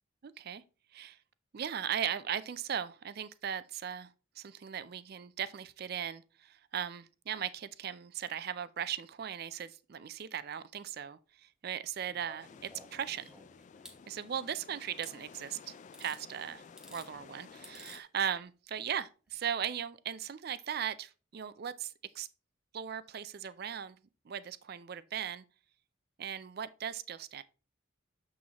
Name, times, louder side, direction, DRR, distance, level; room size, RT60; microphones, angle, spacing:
voice 1, 0.2-0.6 0.9-1.2 1.5-13.3 14.1-15.7 16.0-22.3 22.7-24.0 24.2-25.4 26.2-27.4, right 8 dB, 50° right, 0.4 m, -38 dB
sound 1, 12.0-14.0 15.0-15.1 15.9-16.2 16.6-17.1 17.6-18.0 19.3-19.4, equal, 5° right, 1.1 m, -54 dB
sound 2, 12.4-18.0, left 5 dB, 35° left, 0.3 m, -54 dB
7.1 x 6.2 x 2.9 m
head